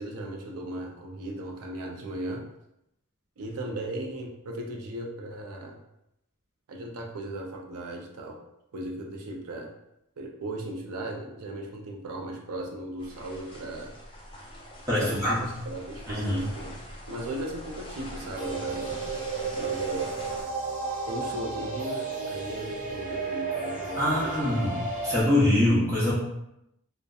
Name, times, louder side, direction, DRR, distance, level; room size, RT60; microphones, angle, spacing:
voice 1, 0.0-2.5 3.4-5.8 6.7-8.4 8.7-9.7 10.2-13.9 14.9-16.8 17.1-18.9 19.6-20.1 21.1-24.6, right 1 dB, 80° right, 2 dB, 0.5 m, -37 dB
sound 1, 13.0-20.4, equal, 20° left, 0.4 m, -43 dB
voice 2, 14.9-15.4 16.1-16.5 24.0-26.1, left 1 dB, 15° right, -9 dB, 0.9 m, -24 dB
sound 2, 18.4-25.2, right 4 dB, 35° right, 0.9 m, -33 dB
2.7 x 2.1 x 2.3 m, 0.83 s
head